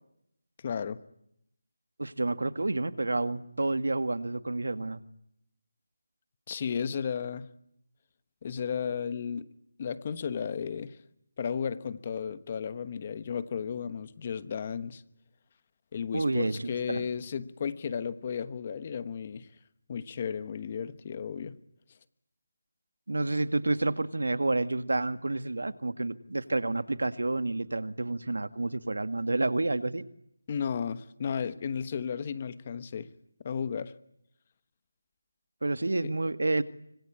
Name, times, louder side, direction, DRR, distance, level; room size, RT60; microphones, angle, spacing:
voice 1, 0.6-1.0 6.5-7.5 8.4-9.5 9.8-11.0 11.4-15.0 15.9-19.5 19.9-21.6 30.5-33.1 33.4-33.9 36.0-36.1, left 7 dB, 25° left, 14 dB, 1.1 m, -34 dB
voice 2, 2.0-5.0 16.1-17.1 23.1-30.0 35.6-36.6, right 2 dB, 80° right, 11 dB, 1.8 m, -29 dB
25.5 x 25.0 x 8.5 m, 0.77 s
figure-of-eight pair, 175°, 0 cm